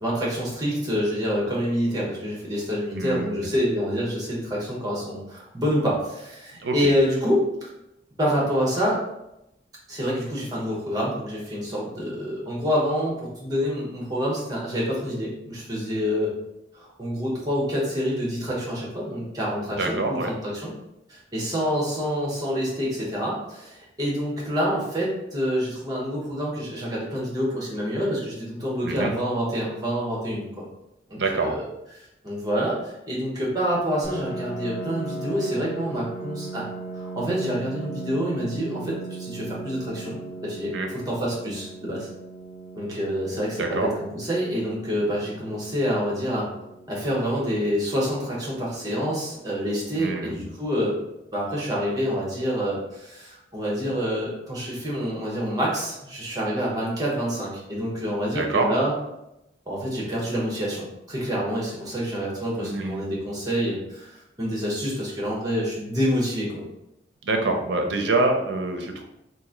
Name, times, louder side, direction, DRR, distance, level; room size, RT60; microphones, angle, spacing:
voice 1, 0.0-7.4 8.2-9.0 9.9-16.3 16.7-20.7 21.1-30.6 31.1-31.6 32.2-36.7 36.9-40.2 40.4-42.1 42.7-46.5 46.9-51.0 51.3-58.9 59.7-66.6, equal, 20° right, -4 dB, 0.9 m, -27 dB
voice 2, 2.9-3.3 6.6-6.8 19.7-20.3 28.8-29.1 31.2-31.6 40.7-40.9 43.6-43.9 50.0-50.4 58.3-58.7 62.6-63.0 67.2-69.0, right 3 dB, 70° right, 4 dB, 0.5 m, -25 dB
Piano, 34.0-49.4, right 2 dB, 60° left, 1.0 m, -38 dB
3.0 x 2.5 x 3.7 m, 0.87 s
head